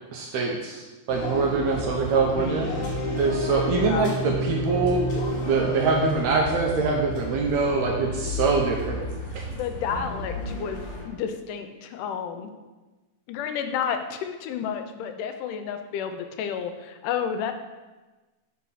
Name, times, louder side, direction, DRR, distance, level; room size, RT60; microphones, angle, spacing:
voice 1, 0.1-2.7 3.2-5.0 5.4-9.0 9.3-9.4, right 4 dB, 75° right, 0 dB, 1.7 m, -24 dB
sound 1, 1.1-11.1, equal, 50° left, 2.3 m, -31 dB
voice 2, 3.5-4.3 7.6-8.2 9.5-10.8 11.1-12.5 13.3-17.5, left 7 dB, 90° left, 7 dB, 2.2 m, -31 dB
5.1 x 4.2 x 5.5 m, 1.2 s
omnidirectional pair, 3.6 m